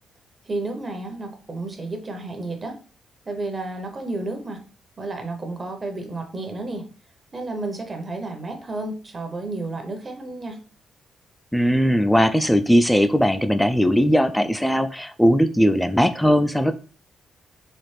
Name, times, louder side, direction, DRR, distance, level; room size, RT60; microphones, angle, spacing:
voice 1, 0.5-2.8 3.3-4.6 5.0-6.8 7.3-10.6, right 2 dB, 30° right, 3 dB, 0.9 m, -31 dB
voice 2, 11.5-16.7, equal, 5° left, 9 dB, 0.3 m, -19 dB
4.1 x 2.4 x 3.2 m, 0.37 s
cardioid pair, 105°, 0 cm